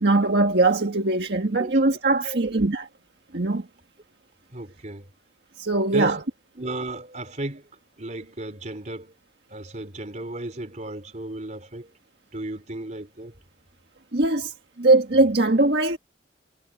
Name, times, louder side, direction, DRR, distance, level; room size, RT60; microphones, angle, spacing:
voice 1, 0.0-2.9 3.3-3.7 5.6-6.2 14.1-16.0, right 2 dB, 70° right, 1.6 m, -21 dB
voice 2, 4.5-5.1 5.9-6.2 6.6-7.6 8.0-9.1 9.5-11.9 12.3-13.3, right 1 dB, 45° right, 3.7 m, -34 dB
head